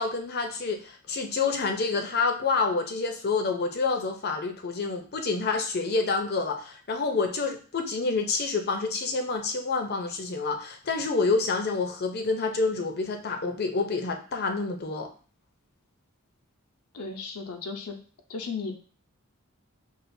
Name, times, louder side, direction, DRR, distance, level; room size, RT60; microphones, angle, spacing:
voice 1, 0.0-15.1, left 4 dB, 45° left, 5 dB, 0.6 m, -28 dB
voice 2, 16.9-18.0 18.3-18.8, left 4 dB, 85° left, 4 dB, 0.6 m, -35 dB
5.7 x 2.4 x 2.6 m, 0.40 s
head